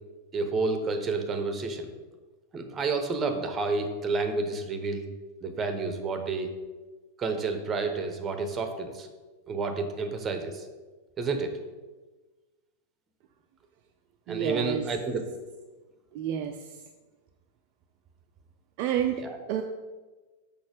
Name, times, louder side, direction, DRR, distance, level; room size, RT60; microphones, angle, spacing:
voice 1, 0.3-1.9 2.5-5.0 5.4-6.5 7.2-9.1 9.5-10.7 11.2-11.6 14.3-15.2 19.2-19.4, right 3 dB, 20° right, 6 dB, 0.9 m, -30 dB
voice 2, 14.3-14.8 16.1-16.5 18.8-19.2 19.5-19.6, right 10 dB, 45° right, 4 dB, 0.4 m, -29 dB
6.4 x 5.4 x 4.9 m, 1.3 s
figure-of-eight pair, 90°, 0 cm